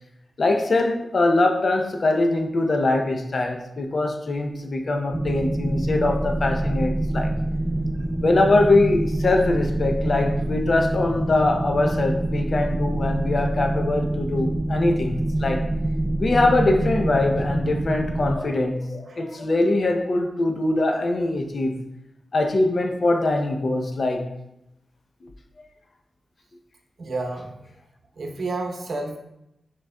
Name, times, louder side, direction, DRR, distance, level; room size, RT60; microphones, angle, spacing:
voice 1, 0.4-7.3 8.2-15.7 16.2-21.8 22.3-24.3, left 2 dB, 50° left, 0.6 m, -22 dB
sound 1, 5.1-18.4, right 1 dB, 15° right, 0.4 m, -26 dB
voice 2, 27.0-27.5 28.2-29.2, right 2 dB, 70° right, 0.8 m, -30 dB
6.2 x 3.8 x 2.2 m
wide cardioid pair, 120°, 0 cm